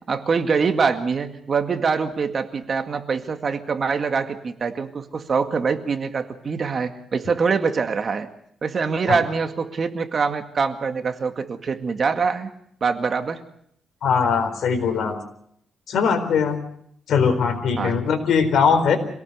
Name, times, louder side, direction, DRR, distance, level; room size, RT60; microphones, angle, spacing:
voice 1, 0.1-8.3 8.6-12.5 12.8-13.4 17.8-18.0, right 5 dB, 45° right, 7 dB, 2.0 m, -24 dB
voice 2, 14.0-15.2 15.9-16.6 17.1-19.0, left 6 dB, 75° left, 8 dB, 4.2 m, -20 dB
26.0 x 18.0 x 6.7 m, 0.68 s
cardioid pair, 120°, 0 cm